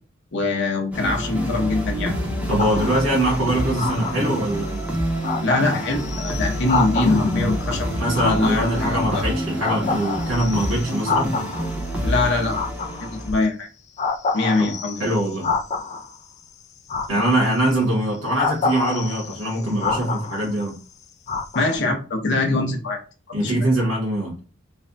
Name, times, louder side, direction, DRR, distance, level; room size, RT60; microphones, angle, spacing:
voice 1, 0.3-2.1 5.4-7.9 8.2-9.3 12.0-12.6 13.0-13.7 14.3-15.1 17.1-17.2 21.5-23.0 23.3-23.7, left 2 dB, 55° left, 2 dB, 0.7 m, -23 dB
sound 1, 0.9-13.3, equal, 5° right, 0.7 m, -27 dB
voice 2, 2.5-4.9 8.0-11.3 14.6-14.7 15.0-15.5 17.1-20.8 23.3-24.4, right 1 dB, 75° right, -2 dB, 1.4 m, -23 dB
sound 2, 2.6-3.2 3.8-4.5 4.9-5.0 5.2-7.4 8.1-9.2 9.6-11.8 12.4-13.4 14.0-16.2 16.9-17.7 18.3-20.7 21.3-21.8, left 4 dB, 35° left, 0.4 m, -28 dB
3.3 x 2.2 x 3.9 m, 0.37 s
head